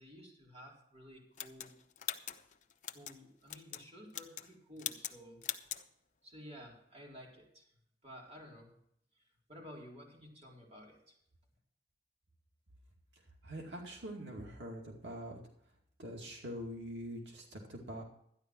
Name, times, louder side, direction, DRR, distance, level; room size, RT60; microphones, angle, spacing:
voice 1, 0.0-1.8 2.9-5.4 6.2-7.7 8.0-8.7 9.1-11.2, equal, 35° right, -2 dB, 4.1 m, -53 dB
sound 1, 1.4-3.2 3.5-3.8 4.1-4.5 4.8-5.2 5.4-5.8, left 10 dB, 45° left, 0.8 m, -41 dB
voice 2, 13.4-15.4 16.0-18.0, equal, 90° right, 0 dB, 2.4 m, -44 dB
13.0 x 10.5 x 4.6 m, 0.71 s
head